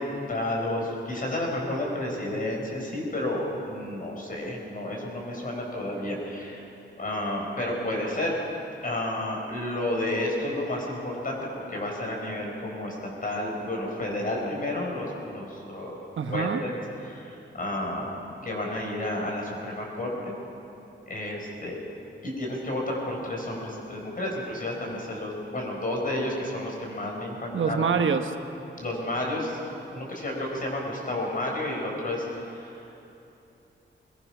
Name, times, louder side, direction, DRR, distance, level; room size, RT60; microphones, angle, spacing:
voice 1, 0.0-6.6 7.0-8.4 8.8-13.0 13.2-16.0 16.3-16.7 17.0-18.1 18.4-20.3 21.0-21.8 22.2-27.9 28.8-29.6 29.9-32.7, left 1 dB, 45° left, -1 dB, 5.0 m, -31 dB
voice 2, 16.2-16.6 27.5-28.4, right 6 dB, 80° right, 7 dB, 1.1 m, -25 dB
22.0 x 21.0 x 6.0 m, 2.8 s
wide cardioid pair, 150°, 20 cm